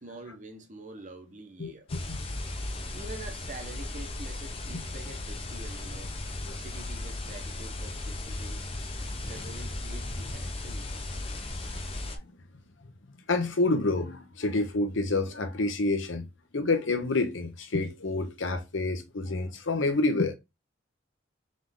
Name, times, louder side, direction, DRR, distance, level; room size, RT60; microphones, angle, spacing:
voice 1, 0.0-1.9 2.9-6.1 6.6-8.7 9.2-11.2, right 2 dB, 40° right, 0.9 m, -46 dB
sound 1, 1.9-12.2, left 2 dB, 30° left, 0.6 m, -36 dB
voice 2, 13.3-16.3 16.5-20.4, left 2 dB, 80° left, 0.8 m, -28 dB
3.8 x 3.3 x 3.7 m
head